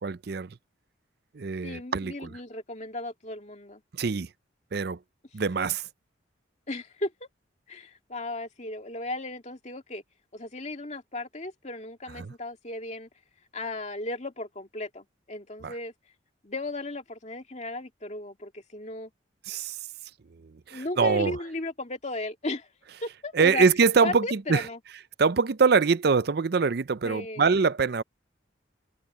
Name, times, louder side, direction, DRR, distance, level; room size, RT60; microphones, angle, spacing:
voice 1, 0.0-0.6 1.3-2.3 3.9-4.3 4.7-5.0 5.3-5.8 12.2-12.3 15.6-15.7 19.5-19.8 20.7-21.4 23.3-24.7 25.2-28.0, right 5 dB, 55° right, 0.5 m, -24 dB
voice 2, 1.6-3.8 6.7-7.3 7.7-10.0 10.3-13.1 13.5-15.9 16.4-19.1 20.7-22.7 23.0-23.7 24.0-24.8 27.0-27.5, left 2 dB, 35° left, 2.2 m, -35 dB
head